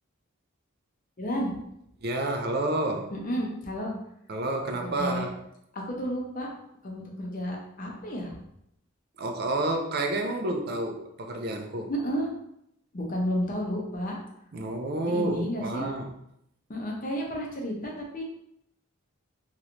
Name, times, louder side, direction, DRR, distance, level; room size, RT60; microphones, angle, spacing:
voice 1, 1.2-1.5 3.1-3.9 5.0-5.3 5.7-6.5 6.8-8.4 11.9-12.3 12.9-14.2 15.1-15.9 16.7-18.2, equal, 40° left, -1 dB, 0.6 m, -31 dB
voice 2, 2.0-3.1 4.3-5.3 9.2-11.9 14.5-16.1, right 2 dB, 45° right, 4 dB, 0.4 m, -29 dB
3.1 x 2.9 x 2.5 m, 0.79 s
head